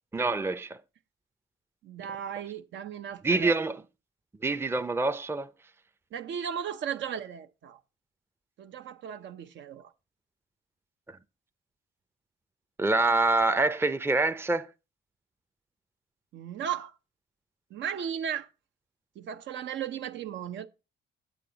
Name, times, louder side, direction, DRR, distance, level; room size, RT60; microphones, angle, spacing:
voice 1, 0.1-0.8 3.2-3.8 4.4-5.5 12.8-14.7, right 3 dB, 10° right, 0.5 m, -26 dB
voice 2, 1.8-3.5 6.1-7.8 8.6-9.9 16.3-16.9 17.7-18.5 19.2-20.7, right 8 dB, 70° right, 0.7 m, -36 dB
8.6 x 8.5 x 3.8 m
cardioid pair, 90°, 20 cm